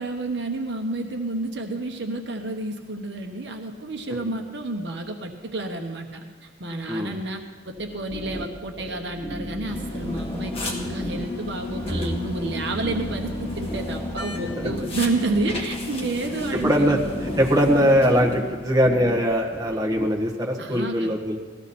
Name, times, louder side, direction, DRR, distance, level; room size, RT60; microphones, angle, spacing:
voice 1, 0.0-16.9 20.6-21.1, right 2 dB, 60° right, 3 dB, 1.1 m, -30 dB
sound 1, 7.8-20.1, equal, 5° left, 0.7 m, -36 dB
sound 2, 9.7-18.7, left 1 dB, 30° left, 2.0 m, -33 dB
voice 2, 16.6-21.4, equal, 20° right, -1 dB, 1.5 m, -21 dB
18.0 x 14.0 x 4.3 m, 1.5 s
head